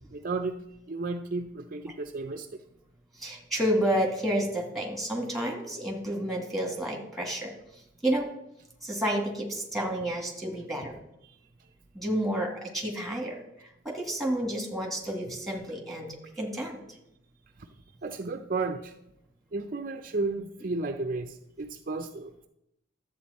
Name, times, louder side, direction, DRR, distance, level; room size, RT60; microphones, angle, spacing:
voice 1, 0.1-0.6 0.9-2.6 11.2-11.3 17.6-17.7 18.0-18.9 19.5-22.5, right 3 dB, 45° right, 5 dB, 0.5 m, -33 dB
voice 2, 3.1-8.3 8.8-10.9 11.9-16.8, right 1 dB, ahead, 0 dB, 2.1 m, -30 dB
12.0 x 8.1 x 4.2 m, 0.83 s
head